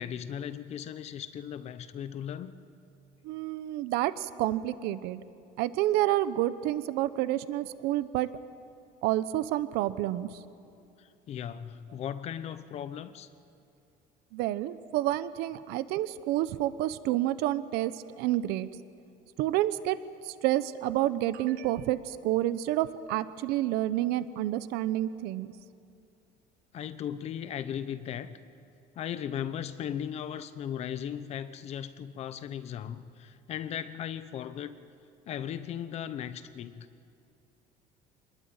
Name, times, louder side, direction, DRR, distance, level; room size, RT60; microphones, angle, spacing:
voice 1, 0.0-2.5 11.0-13.3 26.7-28.4 28.9-34.8 35.3-36.9, left 9 dB, 40° left, 12 dB, 1.0 m, -37 dB
voice 2, 3.2-5.2 5.6-8.3 9.0-10.3 14.3-18.7 19.4-20.0 20.3-25.5, right 14 dB, 80° right, 14 dB, 0.9 m, -29 dB
26.0 x 20.5 x 8.9 m, 2.5 s
cardioid pair, 170°, 16 cm